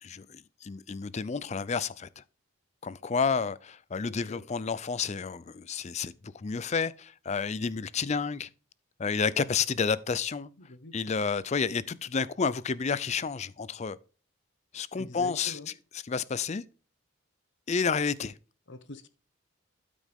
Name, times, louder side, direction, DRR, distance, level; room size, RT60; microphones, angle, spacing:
voice 1, 0.0-2.2 2.8-8.5 9.0-10.5 10.9-14.0 14.7-16.6 17.7-18.3, left 5 dB, 30° left, 0.4 m, -30 dB
voice 2, 10.6-10.9 15.0-15.7 18.7-19.1, left 2 dB, 55° left, 1.0 m, -44 dB
12.5 x 5.2 x 3.5 m
head